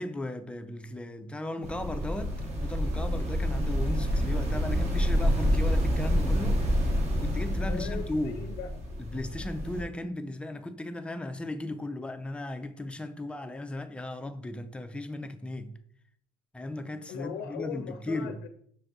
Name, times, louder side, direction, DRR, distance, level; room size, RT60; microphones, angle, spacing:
voice 1, 0.0-8.5 9.0-15.8 16.5-18.4, left 1 dB, 5° left, 0.3 m, -36 dB
sound 1, 1.6-9.8, equal, 40° right, 1.1 m, -28 dB
voice 2, 7.7-9.0 17.1-18.5, left 7 dB, 80° left, 0.4 m, -40 dB
5.9 x 2.6 x 3.5 m
cardioid pair, 110°, 17 cm